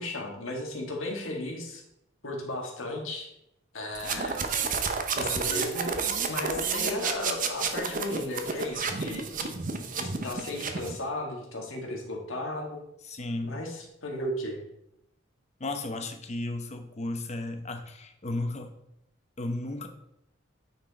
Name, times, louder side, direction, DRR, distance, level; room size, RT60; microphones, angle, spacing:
voice 1, 0.0-1.8 2.2-3.3 3.7-4.5 5.1-9.6 9.9-12.8 13.4-14.6, left 1 dB, 90° left, 1 dB, 1.6 m, -35 dB
sound 1, 3.9-11.0, right 5 dB, 45° right, 0.8 m, -30 dB
voice 2, 13.1-13.6 15.6-18.8 19.4-19.9, left 2 dB, 35° left, 5 dB, 0.8 m, -34 dB
9.1 x 4.5 x 4.1 m, 0.81 s
head